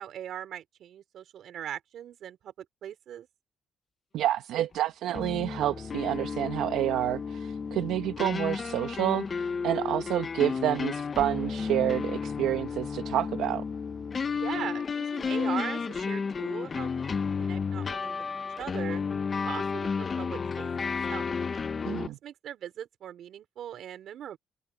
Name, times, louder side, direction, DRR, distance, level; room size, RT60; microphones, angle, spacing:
voice 1, 0.0-3.3 14.3-18.2 18.6-19.0 19.4-20.7 21.1-21.3 22.2-24.4, right 10 dB, 70° right, 5.1 m, -40 dB
voice 2, 4.1-13.6 21.8-22.2, right 13 dB, 85° right, 1.2 m, -29 dB
sound 1, 5.1-22.1, left 5 dB, 40° left, 1.0 m, -32 dB
cardioid pair, 90°, 0 cm